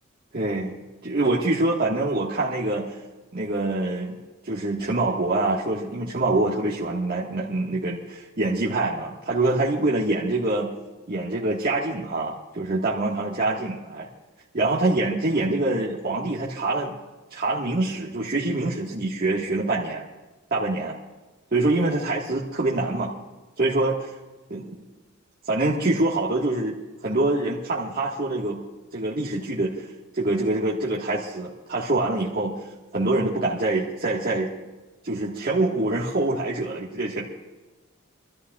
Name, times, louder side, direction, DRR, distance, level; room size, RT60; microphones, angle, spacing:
voice 1, 0.3-0.8 1.0-3.0 3.3-4.2 4.4-10.7 11.1-14.1 14.5-17.0 17.3-20.0 20.5-20.9 21.5-23.1 23.6-24.1 24.5-24.8 25.4-28.6 28.9-29.9 30.1-32.5 32.9-34.5 35.0-37.3, right 2 dB, 45° right, -5 dB, 1.6 m, -25 dB
28.0 x 13.5 x 2.4 m, 1.2 s
head